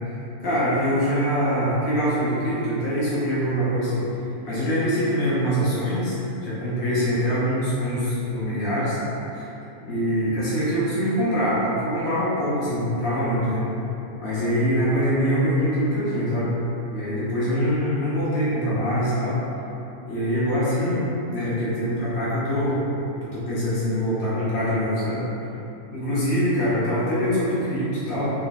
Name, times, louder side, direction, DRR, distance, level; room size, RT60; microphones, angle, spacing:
voice 1, 0.4-4.0 4.4-9.0 9.3-9.5 9.8-13.6 14.2-16.5 16.9-19.4 20.1-22.8 23.2-25.2 25.9-28.3, equal, 45° left, -11 dB, 0.8 m, -24 dB
2.8 x 2.2 x 2.6 m, 3.0 s
figure-of-eight pair, 90°, 0 cm